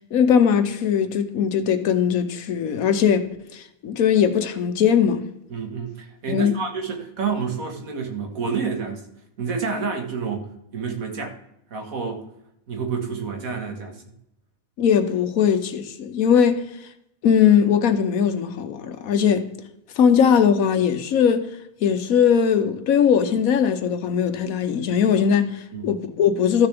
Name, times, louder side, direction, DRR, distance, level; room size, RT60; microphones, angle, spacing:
voice 1, 0.1-3.3 3.5-5.3 6.3-6.6 14.8-16.7 17.2-19.5 20.0-21.5 21.8-26.7, left 7 dB, 85° left, 1.3 m, -20 dB
voice 2, 5.5-9.0 9.4-11.4 11.7-12.3 12.7-14.0 25.7-25.9, right 5 dB, 90° right, 2.0 m, -29 dB
13.5 x 6.8 x 3.4 m
omnidirectional pair, 1.4 m